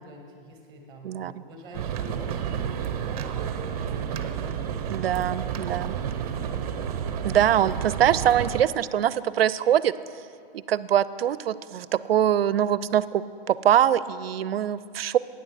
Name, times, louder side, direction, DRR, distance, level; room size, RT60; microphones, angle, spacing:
voice 1, 0.0-6.7, equal, 15° right, 2 dB, 1.5 m, -47 dB
sound 1, 1.7-8.6, right 8 dB, 40° right, 0.6 m, -30 dB
voice 2, 4.9-6.0 7.2-9.9 10.5-15.2, right 10 dB, 90° right, 17 dB, 0.4 m, -23 dB
9.3 x 6.4 x 7.4 m, 2.4 s
hypercardioid pair, 155°, 29 cm